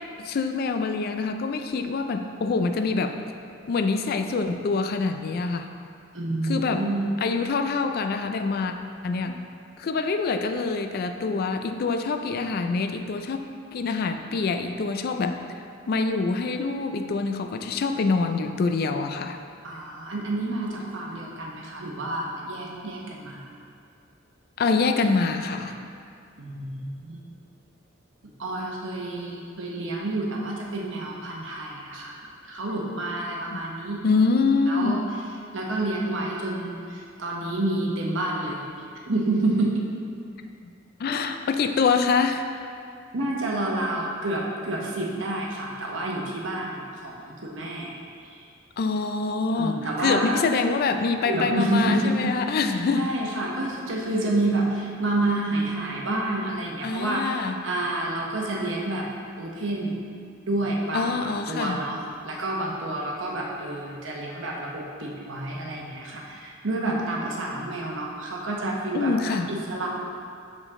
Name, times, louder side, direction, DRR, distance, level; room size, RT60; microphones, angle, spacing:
voice 1, 0.2-3.2 3.7-5.7 6.4-6.9 7.2-8.7 9.0-9.4 9.8-13.4 13.7-15.4 15.9-19.4 24.6-25.8 33.5-33.6 34.0-35.0 41.0-42.5 48.8-53.1 56.8-57.5 60.9-61.8 68.9-69.5, left 4 dB, 50° left, 7 dB, 0.4 m, -25 dB
voice 2, 6.1-7.1 19.6-23.5 26.4-27.3 28.4-32.1 32.4-34.0 34.7-35.0 35.5-38.6 39.1-39.9 43.1-47.9 48.3-48.4 49.5-50.4 51.2-52.3 52.9-59.1 59.4-60.0 60.5-69.9, right 2 dB, 75° right, -2 dB, 1.0 m, -29 dB
6.5 x 5.1 x 3.6 m, 2.3 s
head